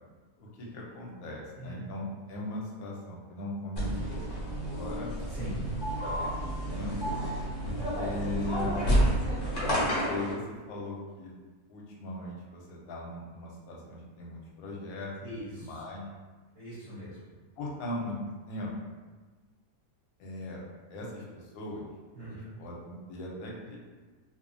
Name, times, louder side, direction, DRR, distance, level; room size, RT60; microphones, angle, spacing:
voice 1, 0.4-5.1 5.8-7.2 7.9-8.8 9.8-11.3 11.7-15.1 15.6-16.0 17.6-18.2 18.5-18.7 20.2-20.6 20.9-21.9 22.2-23.8, left 2 dB, 85° left, -3 dB, 1.0 m, -39 dB
sound 1, 3.8-10.3, equal, 45° left, 0.8 m, -30 dB
voice 2, 5.3-5.6 7.2-7.3 15.2-15.8 16.5-17.3 22.1-22.5, equal, 35° right, -12 dB, 0.5 m, -41 dB
2.8 x 2.1 x 2.5 m, 1.3 s
omnidirectional pair, 1.5 m